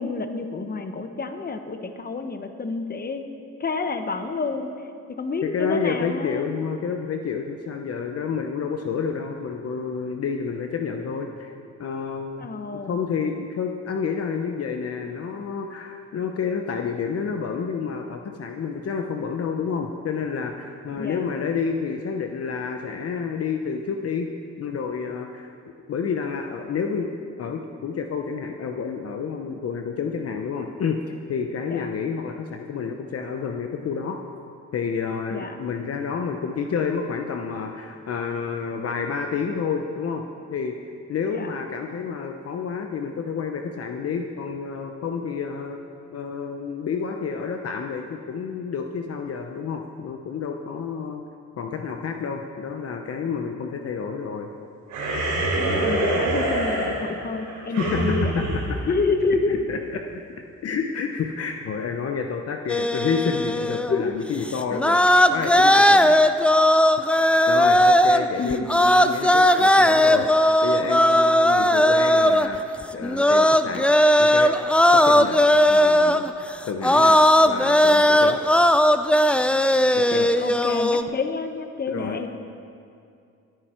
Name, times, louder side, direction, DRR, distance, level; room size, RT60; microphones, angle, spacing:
voice 1, 0.0-3.2 3.6-6.5 12.4-13.0 21.0-21.3 31.7-31.9 35.3-35.6 41.3-41.6 55.5-58.3 58.9-59.7 63.9-64.1 68.4-68.7 80.1-82.3, left 4 dB, 30° left, 7 dB, 1.1 m, -29 dB
voice 2, 5.4-11.5 11.8-24.3 24.6-25.5 25.9-34.2 34.7-40.2 40.5-40.8 41.1-45.8 46.1-51.2 51.6-54.5 57.7-58.8 59.5-66.2 67.5-70.3 70.6-72.6 72.9-73.9 74.2-74.5 74.9-75.4 75.7-76.2 76.7-78.4 79.9-80.3 81.9-82.2, left 6 dB, 50° left, 4 dB, 0.9 m, -29 dB
sound 1, 54.9-59.6, right 1 dB, 90° right, 4.1 m, -25 dB
sound 2, 62.7-64.1 64.5-81.0, left 1 dB, 5° left, 0.4 m, -18 dB
19.5 x 9.6 x 4.5 m, 2.4 s
cardioid pair, 90°, 30 cm